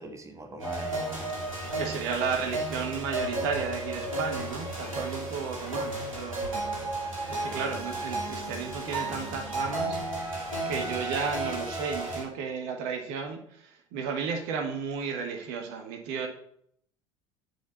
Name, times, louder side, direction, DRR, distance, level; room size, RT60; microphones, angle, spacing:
voice 1, 0.0-1.4 1.7-2.4, right 2 dB, 20° right, 5 dB, 1.6 m, -43 dB
sound 1, 0.6-12.2, right 2 dB, 90° right, 2.6 m, -33 dB
voice 2, 1.7-6.8 7.3-16.3, right 5 dB, 60° right, 4 dB, 1.4 m, -33 dB
7.9 x 4.7 x 7.0 m, 0.68 s
figure-of-eight pair, 70°, 17 cm